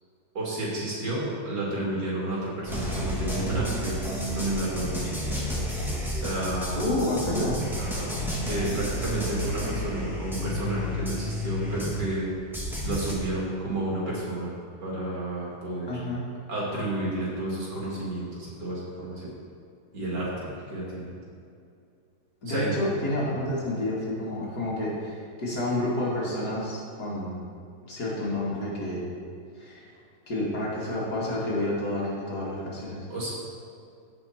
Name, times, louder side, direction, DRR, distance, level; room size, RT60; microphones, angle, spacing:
voice 1, 0.3-4.0 4.3-5.2 6.1-6.8 7.8-8.1 8.4-12.3 12.8-14.5 14.8-15.9 16.5-19.3 19.9-21.1 22.5-22.7 23.4-23.5 33.1-33.3, right 1 dB, 80° right, -5 dB, 3.2 m, -31 dB
sound 1, 2.7-12.2 12.5-13.1, equal, ahead, 1.8 m, -31 dB
voice 2, 6.8-7.6 15.9-16.2 22.4-27.4 27.9-29.0 29.6-29.8 30.3-33.1, left 1 dB, 65° left, -6 dB, 2.8 m, -29 dB
15.5 x 5.3 x 4.4 m, 2.4 s
omnidirectional pair, 1.8 m